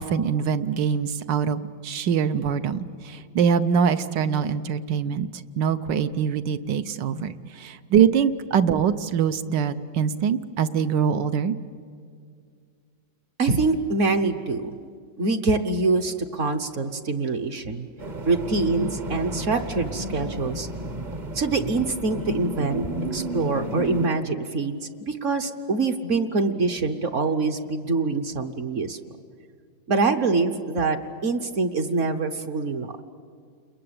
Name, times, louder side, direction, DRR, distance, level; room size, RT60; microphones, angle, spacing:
voice 1, 0.0-5.3 5.6-7.3 7.6-11.5, right 7 dB, 70° right, 11 dB, 1.5 m, -23 dB
voice 2, 13.4-14.7 15.2-17.9 18.2-20.7 21.3-22.9 23.1-24.8 25.1-29.0 29.9-33.0, right 3 dB, 50° right, 7 dB, 1.2 m, -25 dB
sound 1, 18.0-24.1, right 1 dB, 30° right, 0.9 m, -32 dB
29.5 x 21.5 x 8.7 m, 2.2 s
omnidirectional pair, 2.0 m